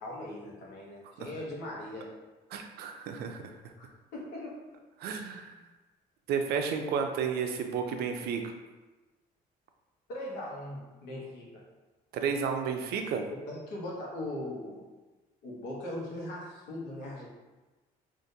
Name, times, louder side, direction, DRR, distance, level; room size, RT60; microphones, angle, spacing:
voice 1, 0.0-2.1 3.8-4.6 10.1-11.6 13.5-14.8 15.4-17.3, left 1 dB, 80° left, -3 dB, 1.0 m, -40 dB
voice 2, 2.5-3.4 5.0-5.6 6.3-8.4 12.1-13.2, right 6 dB, 70° right, 5 dB, 0.5 m, -32 dB
3.7 x 2.5 x 2.7 m, 1.2 s
cardioid pair, 110°, 17 cm